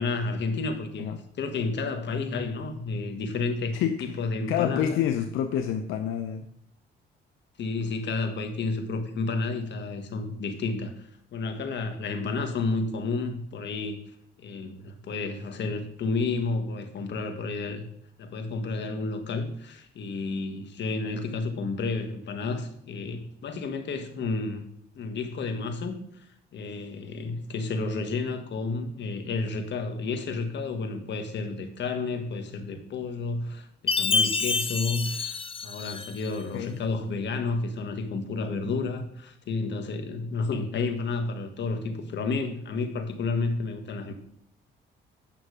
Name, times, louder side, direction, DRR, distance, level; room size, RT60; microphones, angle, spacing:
voice 1, 0.0-1.1 1.4-5.0 7.6-14.0 14.4-17.8 18.2-24.6 24.9-26.2 26.5-44.1, left 3 dB, 65° left, 6 dB, 1.6 m, -31 dB
voice 2, 4.5-6.5 36.5-36.8, left 9 dB, 90° left, 6 dB, 0.7 m, -27 dB
Chime, 33.9-36.4, left 4 dB, 25° left, 0.7 m, -27 dB
9.1 x 6.0 x 4.9 m, 0.69 s
cardioid pair, 90°, 20 cm